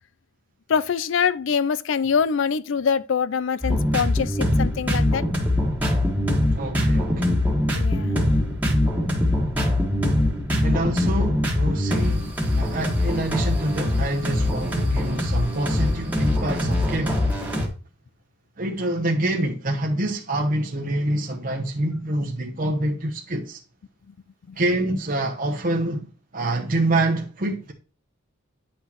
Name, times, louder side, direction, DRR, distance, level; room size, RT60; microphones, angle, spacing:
voice 1, 0.7-5.2 7.7-8.2 24.5-24.6, left 6 dB, 60° left, 0.4 m, -24 dB
sound 1, 3.6-17.7, left 1 dB, 10° right, 1.5 m, -23 dB
voice 2, 6.5-7.5 10.6-17.2 18.6-23.6 24.6-27.7, right 1 dB, 40° right, 0.9 m, -26 dB
9.9 x 5.8 x 3.0 m
head